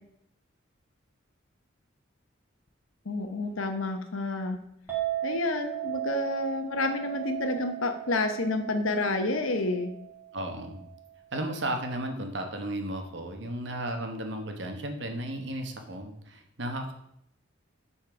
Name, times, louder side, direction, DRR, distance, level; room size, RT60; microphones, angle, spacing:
voice 1, 3.0-4.6 5.2-9.9, left 2 dB, 85° left, 7 dB, 1.0 m, -29 dB
Chink clink, 4.9-11.2, right 12 dB, 10° right, 2.0 m, -37 dB
voice 2, 10.3-10.9 11.3-16.9, right 1 dB, 60° right, 5 dB, 1.1 m, -34 dB
9.1 x 4.2 x 5.0 m, 0.77 s
head